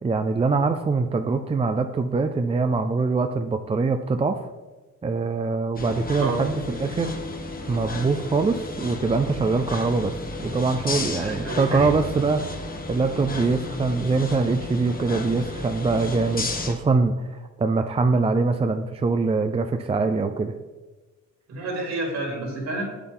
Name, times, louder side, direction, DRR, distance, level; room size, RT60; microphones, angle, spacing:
voice 1, 0.0-4.4 5.0-7.2 7.7-10.1 10.4-12.5 12.9-20.5, right 4 dB, 20° right, 7 dB, 0.4 m, -23 dB
sound 1, 5.8-16.7, left 2 dB, 30° left, 1.1 m, -33 dB
voice 2, 10.9-11.9 21.5-22.8, right 2 dB, 60° right, 0 dB, 3.3 m, -30 dB
8.4 x 8.1 x 3.8 m, 1.2 s
cardioid pair, 90°, 30 cm